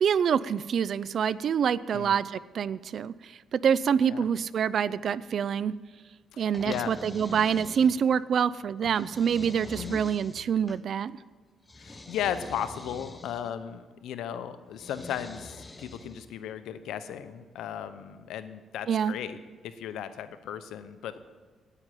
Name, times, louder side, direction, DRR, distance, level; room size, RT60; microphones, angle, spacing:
voice 1, 0.0-5.7 6.4-11.1 18.9-19.2, right 7 dB, 60° right, 19 dB, 0.4 m, -26 dB
voice 2, 6.3-6.9 9.8-10.0 11.8-21.2, left 9 dB, 80° left, 11 dB, 0.8 m, -36 dB
sound 1, 6.5-8.2 8.8-10.8 11.7-13.5 14.7-16.3, left 2 dB, 20° left, 0.9 m, -45 dB
9.8 x 8.8 x 9.8 m, 1.4 s
cardioid pair, 90°, 0 cm